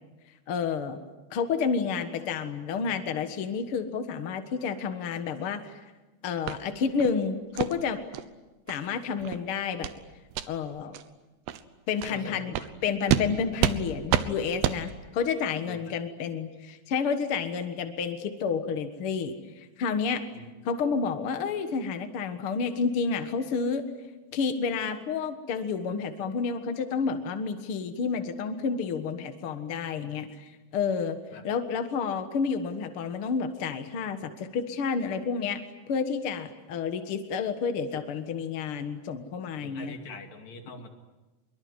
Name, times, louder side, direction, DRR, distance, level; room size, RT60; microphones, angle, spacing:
voice 1, 0.5-1.0 1.3-5.8 6.2-8.0 8.7-9.9 10.5-11.0 11.9-12.5 12.8-20.2 20.6-23.8 24.3-31.2 31.4-35.6 35.9-39.9, left 5 dB, 70° left, 8 dB, 1.3 m, -30 dB
sound 1, 6.5-6.6 7.0-7.2 7.6-7.7 8.1-8.2 8.7-8.8 9.2-9.4 9.8-10.0 10.3-10.5 10.9-11.0 11.5-11.6 12.0-12.1 12.5-12.7 13.1-13.3 13.6-13.8 14.1-14.3 14.6-14.8, right 12 dB, 80° right, 3.0 m, -27 dB
voice 2, 12.1-12.7 15.6-16.3 20.3-20.4 31.3-31.4 39.6-40.9, left 3 dB, 45° left, 4 dB, 3.4 m, -44 dB
24.5 x 23.0 x 9.7 m, 1.1 s
omnidirectional pair, 4.9 m